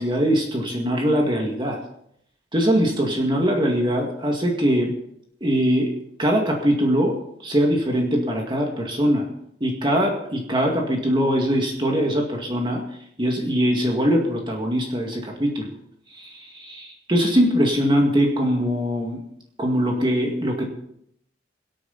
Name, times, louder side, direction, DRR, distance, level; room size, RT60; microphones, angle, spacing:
voice 1, 0.0-1.8 2.5-4.9 5.4-5.9 6.2-9.3 9.6-12.8 13.2-15.7 16.1-19.2 19.6-20.7, equal, 30° right, 0 dB, 2.1 m, -22 dB
23.0 x 8.9 x 4.2 m, 0.73 s
head